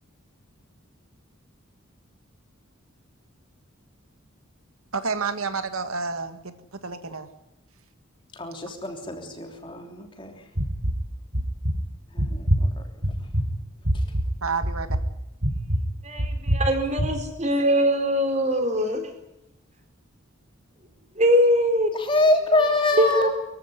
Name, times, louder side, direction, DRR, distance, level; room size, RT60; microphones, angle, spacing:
voice 1, 4.9-7.3 14.4-15.0, right 4 dB, 85° right, 10 dB, 1.7 m, -30 dB
voice 2, 8.3-10.4 12.1-12.7 21.9-23.3, left 2 dB, 25° left, 4 dB, 3.3 m, -25 dB
sound 1, 10.6-11.0 11.3-11.7 12.2-12.6 13.0-13.5 13.8-14.3 14.6-15.1 15.4-15.8 16.2-16.7 17.0-17.1, equal, 60° right, 6.2 m, -23 dB
voice 3, 16.0-19.1 21.2-21.9 23.0-23.3, equal, 30° right, 6 dB, 4.4 m, -22 dB
23.5 x 15.5 x 9.7 m, 0.90 s
head